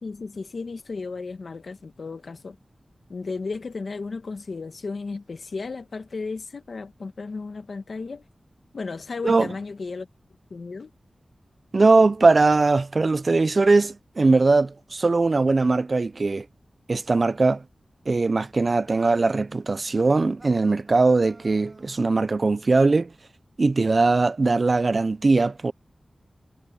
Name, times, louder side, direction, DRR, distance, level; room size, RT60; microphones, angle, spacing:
voice 1, 0.0-2.6 3.1-8.3 8.7-10.1 10.5-10.9, left 4 dB, 65° left, 1.5 m, -34 dB
voice 2, 11.7-16.5 16.9-17.6 18.1-23.1 23.6-25.7, right 3 dB, 50° right, 0.4 m, -20 dB
sound 1, 18.8-22.3, right 2 dB, 30° right, 2.5 m, -50 dB
wide cardioid pair, 90°, 0 cm